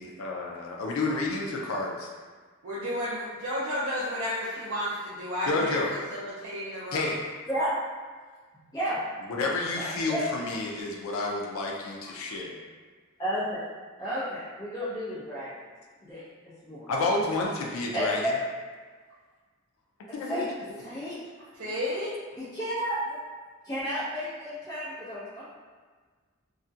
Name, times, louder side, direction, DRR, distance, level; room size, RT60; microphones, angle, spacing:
voice 1, 0.0-2.1 5.5-5.9 6.9-7.2 9.3-12.6 16.9-18.3 20.1-20.4, left 2 dB, 75° left, -1 dB, 0.4 m, -30 dB
voice 2, 2.6-5.8 6.1-7.1 21.6-22.1, equal, 70° right, -9 dB, 0.4 m, -32 dB
voice 3, 8.5-9.0 9.7-10.2 13.2-13.6 14.0-15.5 16.0-16.2 16.6-16.9 17.9-18.4 20.1-20.5 20.8-21.2 22.4-23.2 23.6-25.4, equal, 15° left, -13 dB, 0.6 m, -32 dB
2.3 x 2.1 x 2.6 m, 1.5 s
head